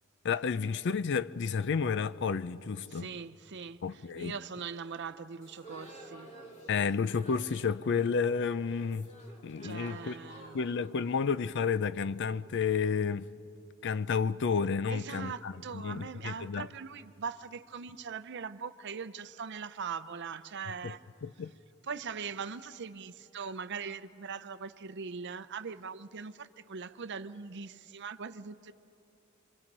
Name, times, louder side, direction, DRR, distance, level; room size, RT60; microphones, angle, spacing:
voice 1, 0.2-3.1 3.8-4.3 6.7-9.1 9.4-10.2 10.5-13.3 13.8-15.5 15.8-16.7 20.8-20.9 21.2-21.5, left 5 dB, 55° left, 0.5 m, -31 dB
voice 2, 2.9-6.3 9.6-10.7 14.9-21.0 21.8-28.7, right 6 dB, 55° right, 0.6 m, -41 dB
sound 1, 5.4-12.4, right 1 dB, 30° left, 2.7 m, -53 dB
29.0 x 24.0 x 5.4 m
head